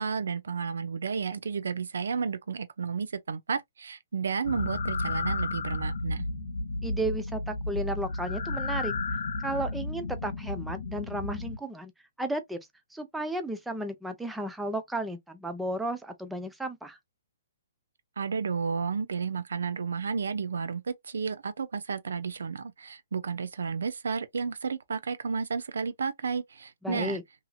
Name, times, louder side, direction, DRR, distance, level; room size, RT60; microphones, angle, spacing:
voice 1, 0.0-6.3 18.2-27.2, right 5 dB, 80° right, 0.5 m, -32 dB
sound 1, 4.4-11.6, left 2 dB, 70° left, 0.6 m, -32 dB
voice 2, 6.8-8.9 9.4-11.9 12.2-12.6 12.9-17.0 26.8-27.2, right 1 dB, 5° right, 0.5 m, -33 dB
2.8 x 2.7 x 2.3 m
hypercardioid pair, 145°, 0 cm